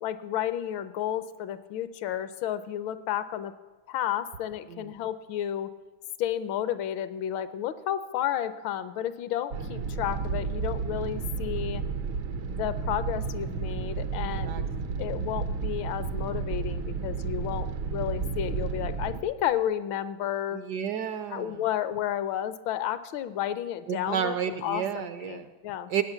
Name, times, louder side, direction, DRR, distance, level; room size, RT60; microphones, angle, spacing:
voice 1, 0.0-3.5 3.9-5.7 6.2-11.8 12.5-14.7 15.0-20.6 21.3-24.4 24.6-25.9, left 11 dB, 75° left, 13 dB, 1.4 m, -32 dB
sound 1, 9.5-19.2, right 5 dB, 85° right, 1.9 m, -32 dB
voice 2, 14.2-14.6 20.5-21.6 23.9-25.5 25.9-26.0, right 8 dB, 70° right, 10 dB, 1.0 m, -31 dB
17.5 x 8.5 x 7.1 m, 1.3 s
omnidirectional pair, 2.2 m